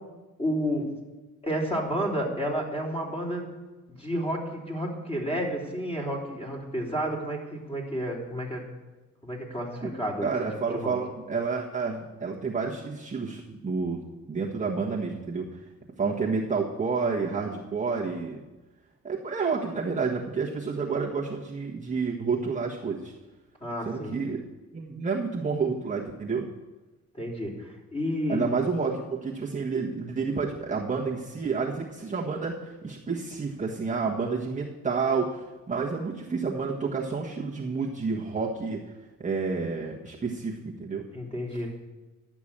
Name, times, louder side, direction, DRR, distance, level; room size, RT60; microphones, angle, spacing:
voice 1, 0.4-0.9 1.4-3.5 4.0-8.6 9.2-10.3 10.7-10.9 23.6-24.2 27.2-28.4 41.1-41.7, equal, 20° left, -2 dB, 3.5 m, -31 dB
voice 2, 10.2-14.0 14.3-15.5 16.0-18.4 19.0-23.1 23.8-24.4 24.7-26.5 28.3-38.8 39.2-41.0, right 4 dB, 25° right, -3 dB, 1.4 m, -29 dB
11.5 x 6.1 x 8.7 m, 1.1 s
cardioid pair, 90°, 30 cm